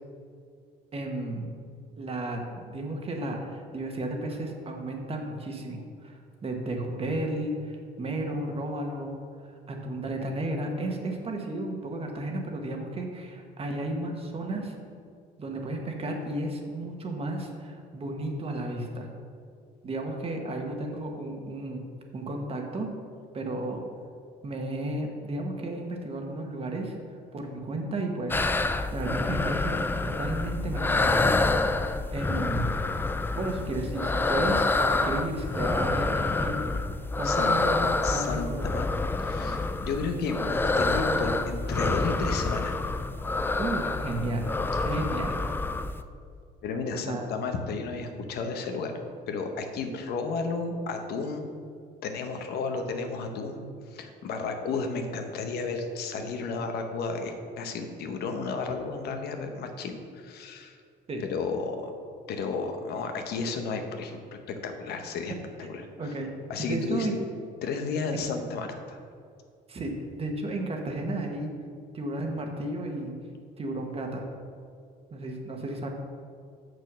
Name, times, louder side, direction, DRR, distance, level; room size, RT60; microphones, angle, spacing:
voice 1, 0.9-1.5 2.0-9.2 9.4-14.7 15.4-19.1 19.8-21.8 22.1-22.9 23.3-23.8 24.4-26.9 27.3-32.7 33.3-36.7 37.2-38.8 43.6-44.5 44.8-45.4 47.1-47.2 61.1-61.2 66.0-66.3 66.6-67.1 69.7-71.5 71.9-73.1 73.6-74.2 75.1-75.9, right 1 dB, 35° right, 2 dB, 1.4 m, -33 dB
sound 1, 28.3-46.0, left 3 dB, 10° left, 0.4 m, -27 dB
voice 2, 38.0-38.9 39.2-42.8 46.6-48.9 49.3-51.5 52.0-60.8 61.3-61.9 62.3-64.2 64.5-65.3 65.6-66.1 66.5-67.1 67.6-69.0, left 4 dB, 70° left, 5 dB, 1.0 m, -33 dB
6.7 x 6.3 x 6.2 m, 2.3 s
cardioid pair, 110°, 17 cm